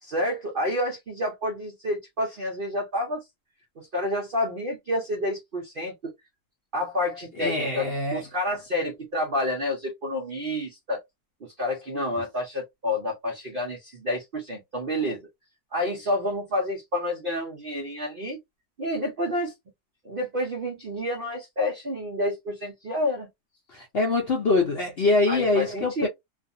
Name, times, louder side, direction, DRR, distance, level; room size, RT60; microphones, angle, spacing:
voice 1, 0.0-3.2 3.8-6.1 6.7-11.0 11.4-15.2 15.7-18.4 18.8-19.5 20.0-23.3 25.3-26.1, left 1 dB, 60° right, 0.5 m, -29 dB
voice 2, 7.4-8.2 23.7-26.1, left 2 dB, 60° left, 0.6 m, -24 dB
2.5 x 2.4 x 2.5 m
omnidirectional pair, 1.7 m